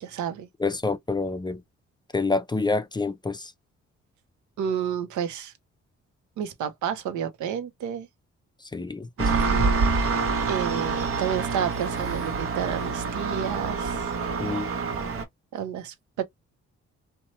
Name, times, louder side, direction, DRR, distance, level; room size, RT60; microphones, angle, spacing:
voice 1, 0.0-0.5 4.6-5.5 6.4-8.1 10.5-14.1 15.5-16.2, right 8 dB, 85° right, 0.7 m, -30 dB
voice 2, 0.6-1.6 2.1-3.5 8.7-9.6 14.4-14.7, left 3 dB, 15° left, 0.4 m, -28 dB
Engine, 9.2-15.2, right 4 dB, 50° right, 0.8 m, -26 dB
2.7 x 2.2 x 2.9 m
cardioid pair, 70°, 29 cm